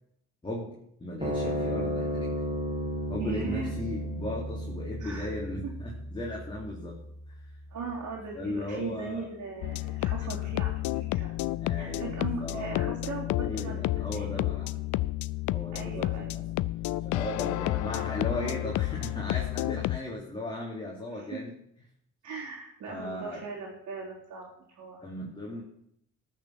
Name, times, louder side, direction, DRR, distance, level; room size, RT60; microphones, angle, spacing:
voice 1, 0.4-2.3 3.1-7.0 7.3-7.4 8.3-9.3 11.6-12.9 13.4-14.7 15.5-16.4 17.0-21.5 22.9-23.4 25.0-25.6, left 1 dB, 15° left, -4 dB, 3.2 m, -36 dB
sound 1, 1.2-7.9, equal, 25° right, 2.7 m, -34 dB
voice 2, 3.2-3.7 5.0-5.3 7.7-10.8 11.2-11.3 11.8-13.8 14.1-14.7 15.7-16.4 21.1-21.4 22.2-25.0, right 4 dB, 80° right, -7 dB, 3.6 m, -39 dB
sound 2, 9.6-20.0, left 17 dB, 75° left, 0.5 m, -31 dB
13.5 x 6.6 x 7.4 m, 0.73 s
cardioid pair, 85°, 30 cm